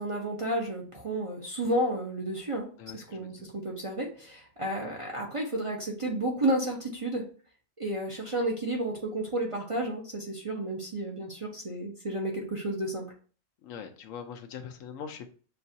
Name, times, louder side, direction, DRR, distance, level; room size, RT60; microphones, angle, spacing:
voice 1, 0.0-2.7 2.9-7.2 7.8-13.1, right 1 dB, 35° right, -1 dB, 0.6 m, -31 dB
voice 2, 2.8-3.5 13.6-15.3, left 7 dB, 80° left, 6 dB, 1.0 m, -42 dB
6.7 x 2.4 x 2.7 m, 0.40 s
omnidirectional pair, 1.4 m